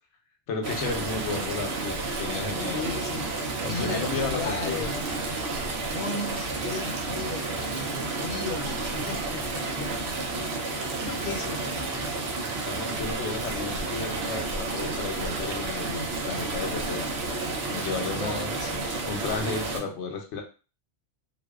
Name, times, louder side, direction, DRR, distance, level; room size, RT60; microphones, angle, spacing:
voice 1, 0.5-2.8 3.6-4.9 10.3-10.6 12.7-17.1 17.7-18.5 19.0-20.4, left 4 dB, 90° left, 2 dB, 0.9 m, -33 dB
sound 1, 0.6-19.8, right 3 dB, 65° right, 0.8 m, -31 dB
voice 2, 2.7-3.3 3.6-5.0 5.9-10.0 11.0-12.2 18.1-18.9, left 4 dB, 60° left, 2 dB, 0.7 m, -36 dB
2.6 x 2.0 x 2.3 m, 0.34 s
omnidirectional pair, 1.2 m